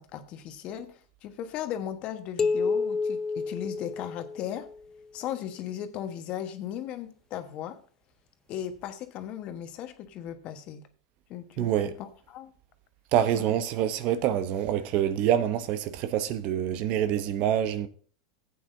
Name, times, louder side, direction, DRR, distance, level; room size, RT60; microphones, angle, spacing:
voice 1, 0.0-4.7 5.1-7.8 8.5-10.8 11.3-11.7 12.0-12.5 13.3-13.6, left 10 dB, 45° left, 1.3 m, -37 dB
sound 1, 2.4-4.8, left 4 dB, 25° left, 0.5 m, -29 dB
voice 2, 11.6-11.9 13.1-17.9, right 10 dB, 50° right, 0.8 m, -26 dB
14.5 x 8.6 x 2.7 m
hypercardioid pair, 100°, 3 cm